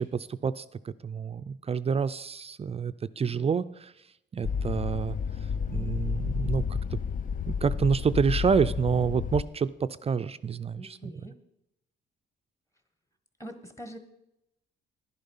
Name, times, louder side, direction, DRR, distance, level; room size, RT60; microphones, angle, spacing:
voice 1, 0.0-3.9 4.3-5.2 5.7-7.0 7.5-11.0, right 6 dB, 30° right, 13 dB, 0.4 m, -28 dB
sound 1, 4.4-9.4, left 6 dB, 40° left, 0.5 m, -31 dB
voice 2, 10.7-11.3 13.4-14.0, right 1 dB, 15° left, 8 dB, 1.5 m, -43 dB
10.5 x 10.5 x 5.6 m, 0.83 s
cardioid pair, 90°, 20 cm